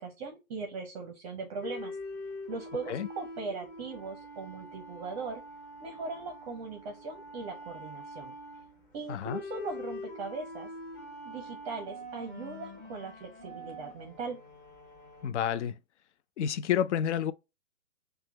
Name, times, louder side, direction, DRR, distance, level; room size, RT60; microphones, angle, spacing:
voice 1, 0.0-1.9 2.5-5.4 5.8-8.3 8.9-10.7 11.2-14.4, right 4 dB, 25° right, 0.6 m, -39 dB
sound 1, 1.6-15.3, left 1 dB, 15° left, 1.0 m, -44 dB
voice 2, 9.1-9.4 15.2-15.8 16.4-17.3, left 9 dB, 55° left, 0.5 m, -29 dB
5.8 x 2.3 x 3.3 m
figure-of-eight pair, 125°, 42 cm